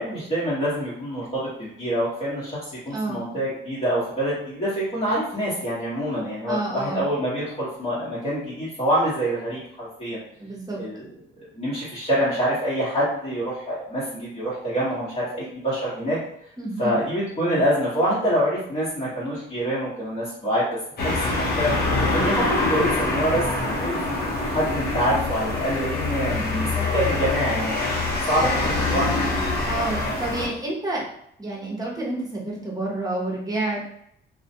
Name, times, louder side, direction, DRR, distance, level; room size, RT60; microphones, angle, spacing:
voice 1, 0.0-2.6 2.8-10.2 10.8-11.0 11.6-16.2 16.8-20.7 21.0-21.7 22.1-27.8 28.3-29.1, equal, 30° left, -9 dB, 1.1 m, -26 dB
voice 2, 2.9-3.3 6.5-7.1 10.4-10.8 16.6-17.0 26.3-26.7 28.4-28.5 29.7-31.0 31.4-33.8, right 2 dB, 20° right, -3 dB, 0.9 m, -29 dB
sound 1, 21.0-30.5, left 2 dB, 55° left, 0.8 m, -25 dB
2.3 x 2.2 x 2.7 m, 0.73 s
cardioid pair, 90°, 20 cm